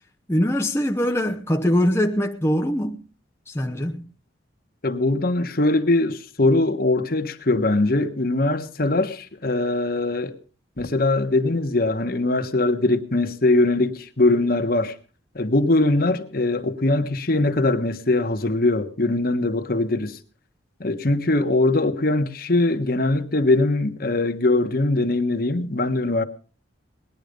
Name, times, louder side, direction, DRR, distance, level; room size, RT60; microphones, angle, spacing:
voice 1, 0.3-3.0 3.5-4.0, equal, 15° left, 0.8 m, -22 dB
voice 2, 4.8-10.3 10.8-14.9 15.3-20.2 20.8-26.2, left 2 dB, 50° left, 1.3 m, -21 dB
19.5 x 11.0 x 5.2 m
head